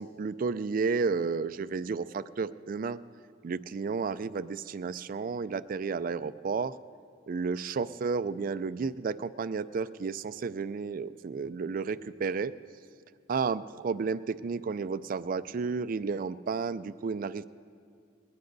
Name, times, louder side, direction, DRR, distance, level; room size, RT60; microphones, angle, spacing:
voice 1, 0.0-3.0 3.4-6.7 7.3-12.5 13.3-17.4, right 5 dB, 50° right, 15 dB, 0.4 m, -32 dB
21.0 x 19.0 x 2.6 m, 2.2 s
head